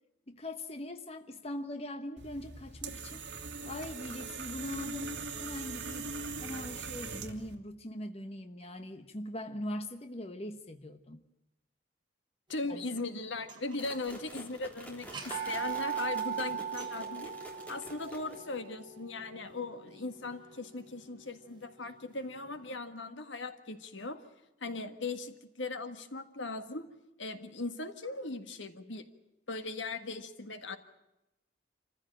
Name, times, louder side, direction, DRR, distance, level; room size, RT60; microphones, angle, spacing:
voice 1, 0.3-3.3 3.6-6.1 6.4-11.2 12.7-12.8, left 1 dB, 30° left, 7 dB, 1.1 m, -41 dB
sound 1, 2.2-7.6, right 4 dB, 65° right, 2.5 m, -41 dB
voice 2, 12.5-24.2 24.6-26.9 27.2-29.1 29.5-30.8, left 3 dB, 80° left, 8 dB, 1.7 m, -39 dB
sound 2, 13.4-14.0 14.3-14.4 15.0-20.9, right 8 dB, 25° right, 3.1 m, -39 dB
sound 3, 13.8-18.7, equal, 10° left, 3.1 m, -49 dB
27.0 x 15.0 x 8.9 m, 0.95 s
head